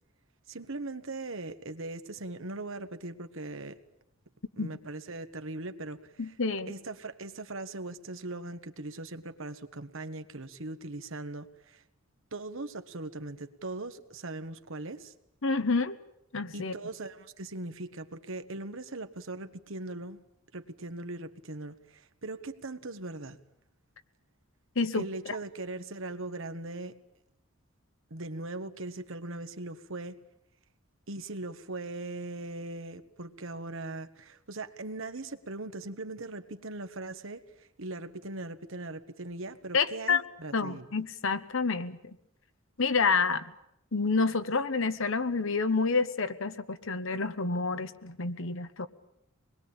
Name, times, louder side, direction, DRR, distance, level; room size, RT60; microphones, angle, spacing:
voice 1, 0.5-3.8 4.6-6.3 6.7-11.8 12.3-15.1 16.5-20.2 20.5-23.4 24.9-27.0 28.1-30.2 31.1-40.9, right 2 dB, 70° right, 1.5 m, -40 dB
voice 2, 6.2-6.7 15.4-15.9 16.3-16.7 24.7-25.1 39.7-40.2 40.5-42.1 42.8-43.5 43.9-48.9, left 4 dB, 65° left, 1.2 m, -28 dB
25.0 x 21.5 x 8.9 m
head